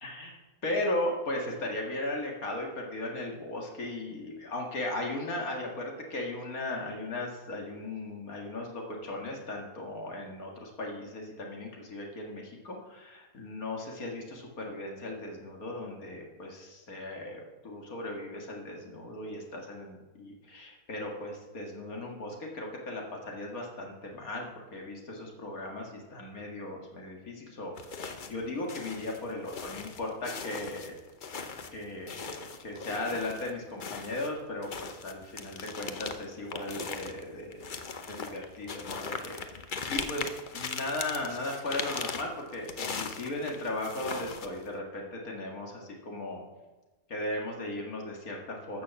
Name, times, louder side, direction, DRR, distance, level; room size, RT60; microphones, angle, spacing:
voice 1, 0.0-24.5 24.7-30.9 31.7-37.6 38.1-46.4 47.1-48.8, left 1 dB, 75° left, 0 dB, 2.4 m, -37 dB
sound 1, 27.8-28.4 28.7-33.5 33.8-44.7, left 5 dB, 45° left, 0.8 m, -39 dB
13.5 x 6.5 x 7.0 m, 1.1 s
omnidirectional pair, 1.5 m